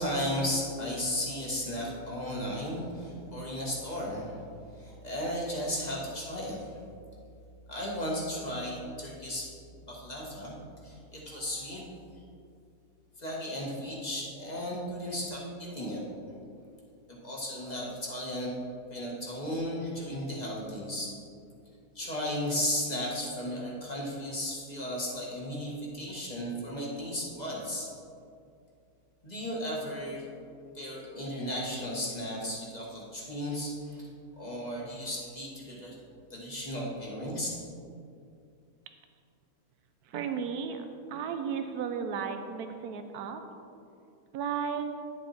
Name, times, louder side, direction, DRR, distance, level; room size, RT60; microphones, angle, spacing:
voice 1, 0.0-4.4 4.7-6.7 7.7-9.5 9.8-10.6 10.8-11.8 13.2-16.0 17.1-18.5 18.9-21.1 22.0-27.9 29.2-30.3 30.7-34.1 34.4-36.0 36.3-37.5, equal, 25° left, -4 dB, 1.8 m, -35 dB
voice 2, 40.1-43.4 44.3-44.9, right 6 dB, 90° right, 7 dB, 1.2 m, -34 dB
10.5 x 7.3 x 4.3 m, 2.4 s
omnidirectional pair, 1.6 m